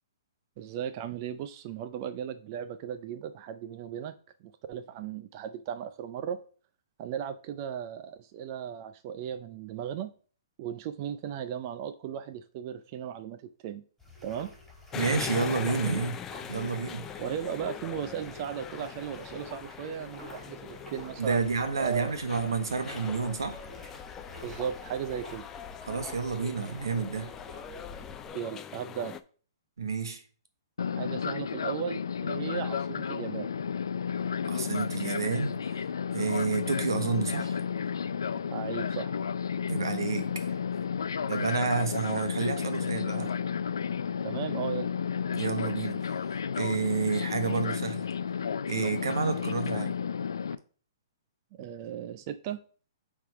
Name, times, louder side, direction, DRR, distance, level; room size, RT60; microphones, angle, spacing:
voice 1, 0.6-4.1 4.4-6.4 7.0-10.1 10.6-13.8 14.2-14.5 17.2-21.4 21.8-22.1 24.4-25.4 28.3-29.2 30.9-33.5 38.5-39.2 44.2-44.9 51.5-52.6, right 9 dB, 40° right, 0.5 m, -36 dB
sound 1, 14.0-28.3, left 2 dB, ahead, 3.0 m, -49 dB
sound 2, 14.9-29.2, left 8 dB, 20° left, 0.5 m, -41 dB
voice 2, 14.9-16.2 16.5-17.1 21.2-23.6 25.8-27.3 29.8-30.2 34.4-35.9 36.1-37.6 39.7-40.5 41.3-43.3 45.3-46.2 46.6-48.1 48.6-49.9, right 5 dB, 85° right, 1.3 m, -30 dB
Fixed-wing aircraft airplane, 30.8-50.6, left 7 dB, 85° left, 0.4 m, -32 dB
7.6 x 3.6 x 4.7 m
hypercardioid pair, 135°, 2 cm